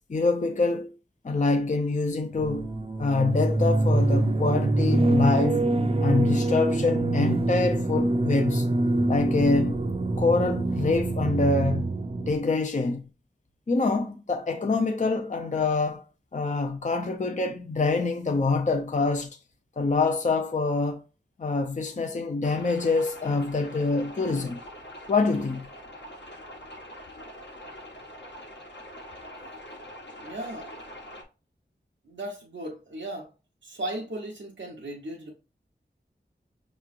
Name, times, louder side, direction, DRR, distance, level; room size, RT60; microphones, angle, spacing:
voice 1, 0.1-1.0 1.2-2.7 3.0-5.7 6.0-8.7 9.1-9.8 10.2-11.9 12.2-13.0 13.7-16.0 16.3-19.4 19.8-21.0 21.4-24.6 25.1-25.7, left 3 dB, 40° left, 0.5 m, -25 dB
sound 1, 2.4-12.3, right 2 dB, 30° right, 0.5 m, -25 dB
sound 2, 22.4-31.2, equal, 70° left, 1.1 m, -44 dB
voice 2, 30.2-30.7 32.1-33.3 33.6-35.3, right 1 dB, 85° right, 0.8 m, -36 dB
5.7 x 3.0 x 2.4 m
wide cardioid pair, 50°, 19 cm